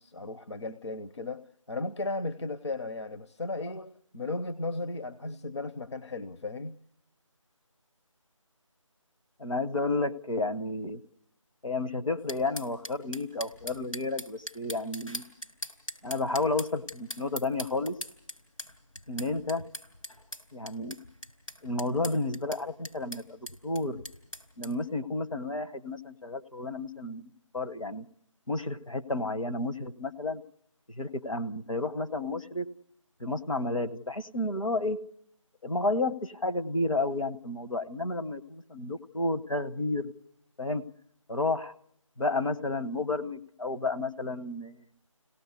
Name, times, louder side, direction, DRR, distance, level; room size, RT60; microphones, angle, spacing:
voice 1, 0.0-1.4 1.7-6.8, left 2 dB, 55° left, 10 dB, 0.8 m, -35 dB
voice 2, 9.4-11.0 11.6-15.2 16.0-18.0 19.1-19.6 20.5-20.9 21.6-24.0 24.6-28.1 28.5-30.4 30.9-32.7 33.2-35.0 35.6-40.1 40.6-40.8 41.3-41.7 42.2-44.9, left 2 dB, 70° left, 10 dB, 1.2 m, -31 dB
sound 1, 12.3-24.7, left 1 dB, 90° left, 4.4 m, -41 dB
24.5 x 17.5 x 8.3 m, 0.76 s
figure-of-eight pair, 170°, 17 cm